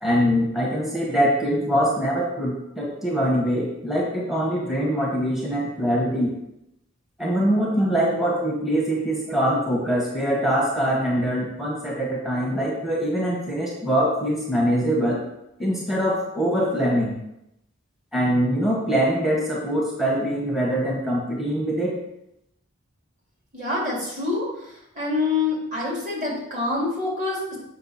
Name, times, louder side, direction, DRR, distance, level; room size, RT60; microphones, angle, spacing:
voice 1, 0.0-6.3 7.2-15.2 15.6-17.1 18.1-22.0, equal, ahead, -4 dB, 1.1 m, -23 dB
voice 2, 23.5-24.5 24.9-27.6, left 3 dB, 35° right, -4 dB, 2.5 m, -26 dB
7.2 x 5.4 x 4.1 m, 0.84 s
head